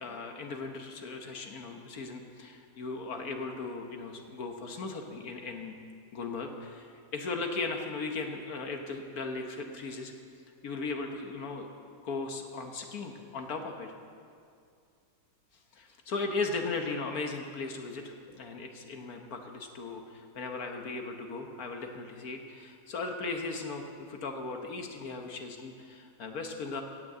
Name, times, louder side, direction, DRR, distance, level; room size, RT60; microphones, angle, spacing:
voice 1, 0.0-5.8 6.1-10.1 10.6-11.7 12.0-13.9 15.7-26.8, left 3 dB, 55° left, 4 dB, 1.4 m, -37 dB
16.5 x 6.4 x 7.9 m, 2.3 s
omnidirectional pair, 2.0 m